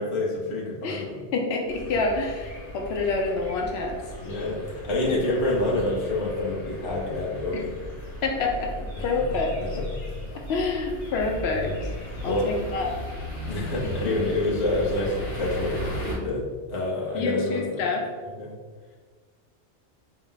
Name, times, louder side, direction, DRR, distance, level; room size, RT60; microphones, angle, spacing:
voice 1, 0.0-1.2 4.2-7.8 9.0-9.8 11.5-11.8 12.2-12.5 13.5-16.4 16.7-17.9 18.4-18.5, left 2 dB, 30° left, -4 dB, 0.6 m, -28 dB
voice 2, 1.3-4.0 5.1-5.2 7.5-7.6 8.2-8.7 9.0-9.6 10.5-11.7 12.2-12.9 14.1-14.2 17.1-18.0, left 3 dB, 70° left, 1 dB, 0.9 m, -27 dB
sound 1, 1.7-16.2, equal, 90° left, 1.4 m, -36 dB
4.2 x 2.1 x 3.8 m, 1.5 s
omnidirectional pair, 1.2 m